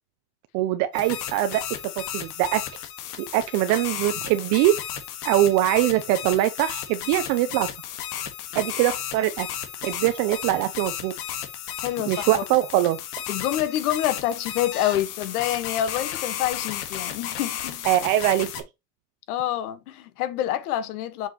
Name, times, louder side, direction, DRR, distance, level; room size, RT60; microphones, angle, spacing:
voice 1, 0.5-1.6 2.0-2.6 3.3-4.7 5.2-7.7 8.5-9.5 9.8-11.1 12.1-13.0 17.9-18.5, right 14 dB, 40° right, 0.5 m, -22 dB
sound 1, 0.9-18.6, left 10 dB, 90° left, 1.7 m, -34 dB
voice 2, 11.8-12.4 13.3-17.9 19.3-21.3, left 12 dB, 75° left, 1.5 m, -27 dB
7.3 x 5.1 x 3.0 m
supercardioid pair, 155°, 45 cm